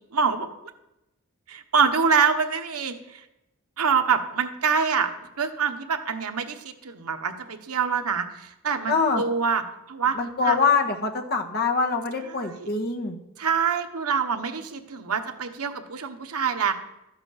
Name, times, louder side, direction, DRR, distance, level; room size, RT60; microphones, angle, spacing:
voice 1, 0.1-0.5 1.5-3.2 3.8-5.1 5.4-10.2 10.4-10.6 12.3-12.7 13.4-16.7, right 6 dB, 85° right, 6 dB, 1.2 m, -25 dB
voice 2, 8.9-9.2 10.2-13.2, left 4 dB, 45° left, 3 dB, 1.4 m, -24 dB
13.0 x 8.1 x 5.8 m, 0.89 s
head